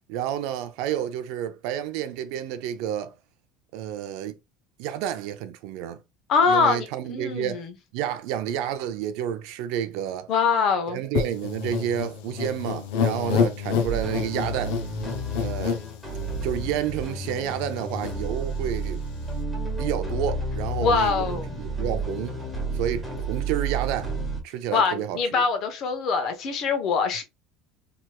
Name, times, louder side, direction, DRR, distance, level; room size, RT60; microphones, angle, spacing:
voice 1, 0.1-3.1 3.7-4.4 4.8-6.0 6.5-7.7 7.9-10.3 10.9-14.8 15.3-15.8 16.4-19.0 19.8-22.4 22.7-24.1 24.4-25.4, right 10 dB, 65° right, 0.5 m, -30 dB
voice 2, 6.3-7.7 10.3-11.0 20.8-21.5 24.7-27.2, left 5 dB, 40° left, 0.8 m, -23 dB
sound 1, 11.1-16.7 17.2-17.3 17.5-18.1, left 7 dB, 75° left, 0.5 m, -28 dB
sound 2, 13.8-24.4, right 2 dB, 5° left, 1.5 m, -31 dB
3.3 x 2.9 x 2.2 m
cardioid pair, 170°, 0 cm